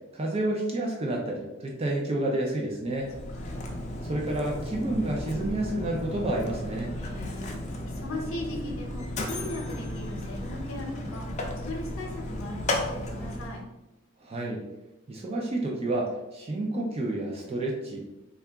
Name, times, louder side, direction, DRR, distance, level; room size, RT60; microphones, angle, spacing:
voice 1, 0.1-3.1 4.0-6.9 14.2-14.6 15.1-18.0, right 1 dB, 30° right, -1 dB, 0.4 m, -30 dB
Mechanisms, 2.9-13.6, left 1 dB, 35° left, 0.4 m, -34 dB
voice 2, 3.3-3.8 7.0-11.3 11.6-13.6, left 1 dB, 85° left, 0 dB, 0.8 m, -38 dB
2.8 x 2.3 x 3.4 m, 0.99 s
head